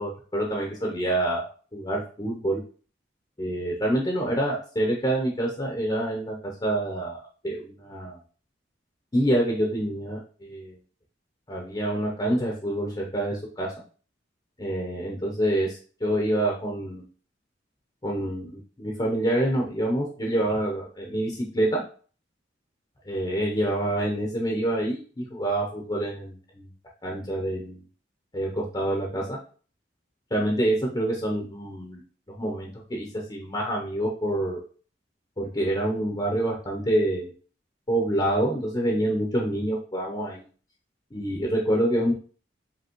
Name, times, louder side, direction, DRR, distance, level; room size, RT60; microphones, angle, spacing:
voice 1, 0.0-1.5 1.7-2.6 3.4-6.3 6.6-7.2 7.4-8.2 9.1-10.8 11.5-13.7 14.6-17.0 18.0-21.8 23.1-26.7 27.0-27.8 28.3-29.4 30.3-32.0 32.3-34.6 35.4-37.3 37.9-40.4 41.1-42.1, right 1 dB, 25° left, -1 dB, 0.7 m, -27 dB
5.1 x 2.8 x 3.0 m, 0.41 s
head